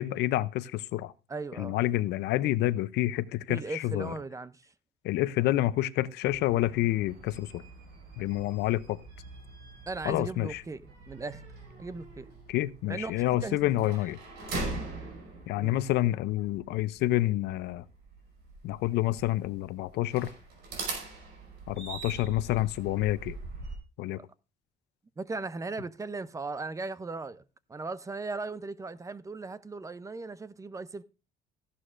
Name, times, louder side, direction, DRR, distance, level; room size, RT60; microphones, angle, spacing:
voice 1, 0.0-1.1 1.6-4.1 5.0-7.6 8.2-9.0 10.0-10.6 12.5-14.2 15.5-17.8 18.6-20.3 21.7-23.4 24.0-24.2, left 15 dB, 80° left, 0.5 m, -28 dB
voice 2, 1.3-1.8 3.5-4.7 8.2-8.3 9.9-11.5 11.8-12.3 12.8-14.0 15.6-15.8 24.2-24.3 25.2-27.4 27.7-31.0, right 3 dB, 20° right, 0.5 m, -38 dB
sound 1, 6.2-23.8, right 3 dB, 80° right, 5.2 m, -42 dB
14.0 x 11.5 x 2.5 m
cardioid pair, 110°, 17 cm